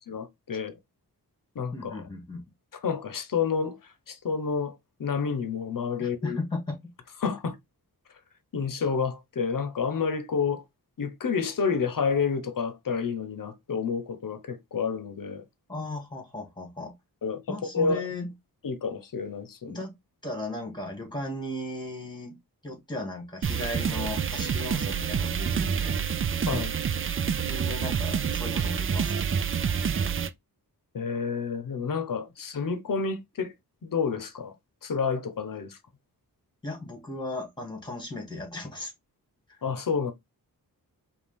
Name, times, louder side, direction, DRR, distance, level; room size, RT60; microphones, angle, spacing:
voice 1, 0.1-0.7 1.5-2.0 2.8-3.8 4.1-6.4 7.2-7.5 8.5-10.6 11.0-15.4 17.2-18.1 18.6-19.8 26.5-26.7 30.9-33.5 33.8-34.5 34.8-35.8 39.6-40.1, left 5 dB, 60° left, 0.9 m, -29 dB
voice 2, 1.7-2.4 6.0-6.9 15.7-16.9 17.5-18.3 19.7-19.9 20.2-22.4 22.6-26.0 27.4-29.3 36.6-38.9 39.5-39.6, left 2 dB, 10° left, 2.1 m, -36 dB
sound 1, 23.4-30.3, right 7 dB, 35° right, 0.4 m, -28 dB
5.1 x 2.5 x 3.4 m
wide cardioid pair, 85°, 38 cm